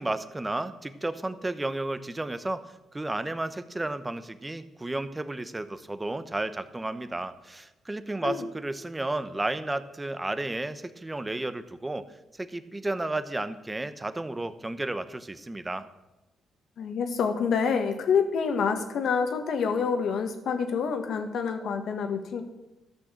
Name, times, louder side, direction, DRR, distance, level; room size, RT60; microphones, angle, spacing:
voice 1, 0.0-2.6 2.9-12.1 12.3-15.9, right 2 dB, 15° right, 12 dB, 0.9 m, -32 dB
voice 2, 16.8-22.4, left 6 dB, 65° left, 6 dB, 1.6 m, -27 dB
13.5 x 6.2 x 7.5 m, 1.0 s
cardioid pair, 90°, 0 cm